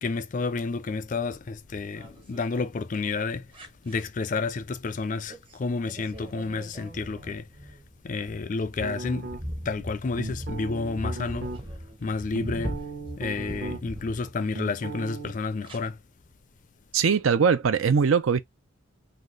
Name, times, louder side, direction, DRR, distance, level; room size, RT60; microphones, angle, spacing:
voice 1, 0.0-3.5 3.8-7.5 8.0-9.3 9.6-11.5 12.0-12.8 13.2-16.0, left 4 dB, 40° left, 0.4 m, -30 dB
sound 1, 1.7-2.7 3.5-4.0 5.3-5.5 5.9-14.7 15.6-15.8, equal, 25° right, 0.7 m, -39 dB
sound 2, 8.8-9.7 10.1-11.6 12.1-14.0 14.3-15.3, right 3 dB, 55° right, 1.0 m, -37 dB
voice 2, 16.9-18.4, right 6 dB, 90° right, 0.5 m, -21 dB
4.0 x 2.3 x 3.1 m
head